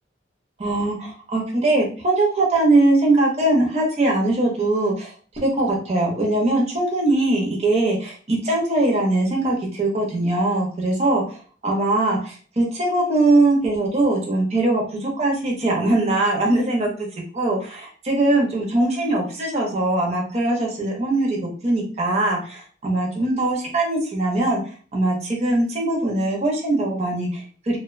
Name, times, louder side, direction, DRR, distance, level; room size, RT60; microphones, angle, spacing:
voice 1, 0.6-5.1 5.4-16.9 17.3-24.6 24.9-27.8, right 2 dB, 35° right, -1 dB, 0.6 m, -21 dB
2.4 x 2.2 x 2.4 m, 0.41 s
head